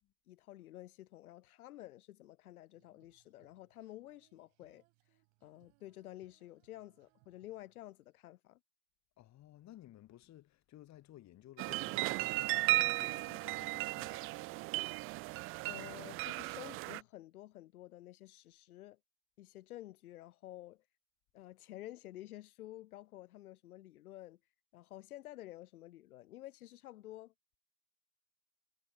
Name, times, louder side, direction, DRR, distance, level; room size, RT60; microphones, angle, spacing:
voice 1, 0.3-8.6 15.1-15.2 15.7-19.0 19.4-20.8 21.3-24.4 24.7-27.3, left 15 dB, 75° left, 0.9 m, -51 dB
Female singing, 2.7-8.2, right 36 dB, 55° right, 7.0 m, -74 dB
voice 2, 9.2-14.5, left 14 dB, 40° left, 2.3 m, -57 dB
sound 1, 11.6-17.0, right 22 dB, 30° right, 0.4 m, -35 dB
hypercardioid pair, 90°, 44 cm